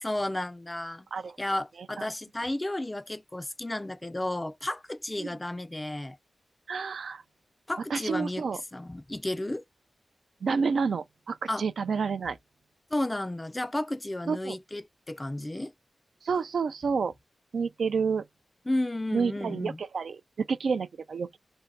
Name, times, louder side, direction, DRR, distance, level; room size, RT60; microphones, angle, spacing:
voice 1, 0.0-1.1 1.4-6.2 7.7-8.4 8.7-9.6 11.5-11.6 12.9-15.7 18.7-19.8, left 1 dB, 20° left, 0.4 m, -32 dB
voice 2, 6.7-7.2 7.9-8.6 10.4-12.4 14.3-14.6 16.2-17.1 17.5-18.2 19.1-21.4, right 5 dB, 80° right, 0.4 m, -29 dB
2.6 x 2.2 x 3.9 m
cardioid pair, 70°, 0 cm